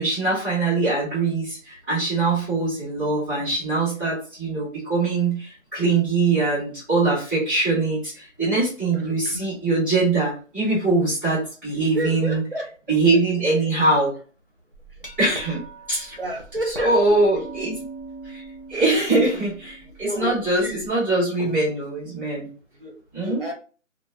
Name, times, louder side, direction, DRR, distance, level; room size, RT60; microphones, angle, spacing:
voice 1, 0.0-12.4 12.9-14.1 15.2-15.6 15.9-16.2 16.7-17.8 18.2-18.4 18.7-22.5 23.1-23.4, right 3 dB, 15° left, -11 dB, 1.5 m, -22 dB
voice 2, 8.9-9.4 11.7-12.7 16.2-17.2 20.0-20.8 22.8-23.5, equal, 45° right, 0 dB, 0.7 m, -31 dB
Glass, 14.7-20.9, right 3 dB, 45° left, 0.5 m, -41 dB
2.6 x 2.1 x 2.3 m, 0.37 s
figure-of-eight pair, 180°, 40 cm